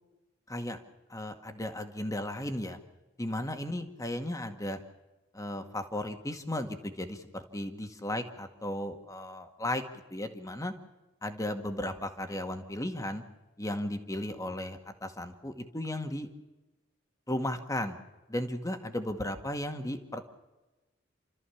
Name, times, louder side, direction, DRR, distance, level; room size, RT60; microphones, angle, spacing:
voice 1, 0.5-0.8 1.1-2.8 3.2-4.8 5.3-10.7 11.2-13.2 13.6-16.3 17.3-18.0 18.3-20.2, left 1 dB, 20° left, 6 dB, 1.9 m, -35 dB
29.5 x 14.0 x 7.2 m, 1.1 s
head